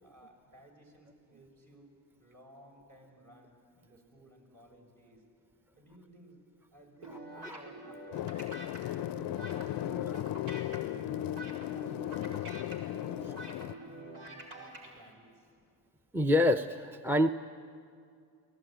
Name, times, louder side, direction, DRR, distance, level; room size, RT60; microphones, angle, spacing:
voice 1, 0.0-1.9 2.2-5.2 5.8-6.4 6.7-8.9 9.2-11.4 11.7-13.5 13.8-14.5 14.8-15.5, right 1 dB, 45° right, 0 dB, 7.2 m, -57 dB
sound 1, 7.0-14.9, right 2 dB, 80° right, 4.9 m, -46 dB
sound 2, 8.1-13.7, left 14 dB, 50° left, 0.5 m, -36 dB
voice 2, 16.1-17.3, left 1 dB, 5° right, 8 dB, 0.7 m, -26 dB
24.0 x 18.5 x 9.3 m, 2.3 s
supercardioid pair, 75°, 46 cm